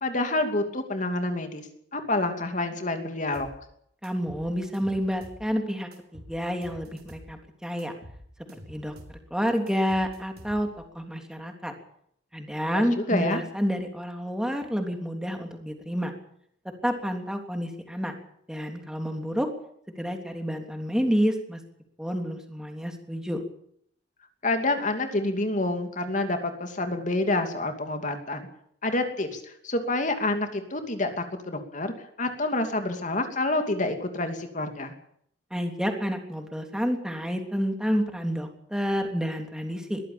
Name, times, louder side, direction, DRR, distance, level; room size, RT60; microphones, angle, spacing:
voice 1, 0.0-3.5 12.6-13.4 24.4-28.5 28.8-31.9 32.2-35.0, left 2 dB, 40° left, 6 dB, 2.7 m, -28 dB
sound 1, 3.3-3.6 4.0-5.5 5.9-7.3 7.8-9.2 9.7-10.9, equal, 55° right, 4.9 m, -47 dB
voice 2, 4.0-7.9 8.7-8.9 9.3-10.7 10.9-11.7 12.3-16.1 16.8-18.1 18.5-19.5 20.0-21.6 22.0-23.4 35.5-40.0, equal, 5° right, 4 dB, 3.3 m, -29 dB
21.5 x 15.0 x 8.8 m, 0.69 s
head